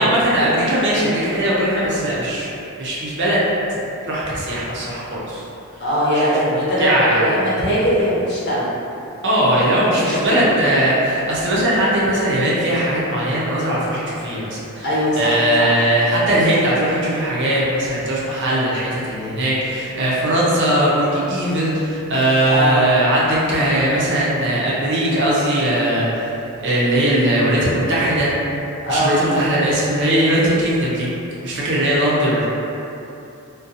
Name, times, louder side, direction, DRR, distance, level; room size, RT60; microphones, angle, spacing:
voice 1, 0.0-2.5 2.8-3.4 4.0-5.4 5.7-5.8 6.2-6.3 6.5-7.2 9.2-14.9 15.2-28.3 28.9-31.1 31.4-32.5, right 1 dB, 55° right, -7 dB, 0.6 m, -19 dB
voice 2, 5.8-6.9 7.1-8.7 9.6-10.5 14.8-15.8 22.5-22.8 28.8-29.2, equal, 50° left, -8 dB, 0.7 m, -20 dB
2.6 x 2.2 x 2.6 m, 2.9 s
head